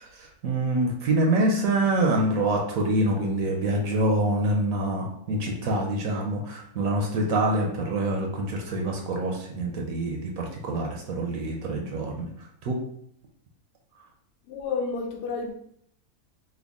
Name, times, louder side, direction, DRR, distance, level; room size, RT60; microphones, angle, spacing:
voice 1, 0.4-12.3 12.6-12.8, right 1 dB, 70° right, 0 dB, 1.0 m, -25 dB
voice 2, 14.5-15.5, left 4 dB, 90° left, 1 dB, 1.2 m, -30 dB
3.5 x 2.1 x 3.5 m, 0.69 s
omnidirectional pair, 1.6 m